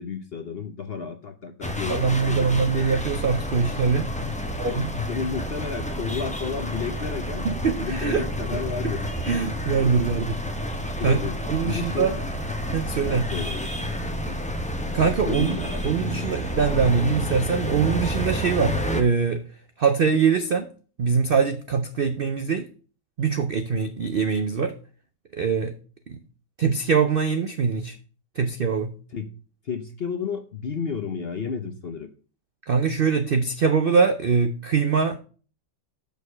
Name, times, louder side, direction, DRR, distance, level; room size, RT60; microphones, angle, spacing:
voice 1, 0.0-2.5 4.2-7.5 7.8-9.1 11.0-11.4 11.6-12.2 13.1-13.7 14.3-14.4 15.2-15.8 29.1-29.3 29.6-32.1, left 6 dB, 55° left, 7 dB, 0.7 m, -32 dB
sound 1, 1.6-19.0, equal, 10° left, 0.4 m, -30 dB
voice 2, 1.9-4.1 4.6-4.9 7.4-8.2 8.8-8.9 9.2-10.4 11.0-11.2 11.5-12.1 12.7-13.3 14.9-15.6 15.8-19.4 19.8-20.7 21.0-22.7 23.2-24.7 25.3-25.7 26.1-26.2 26.6-28.0 28.4-28.9 32.7-35.2, right 5 dB, 85° right, 9 dB, 0.5 m, -23 dB
6.5 x 5.3 x 6.3 m, 0.38 s
omnidirectional pair, 1.8 m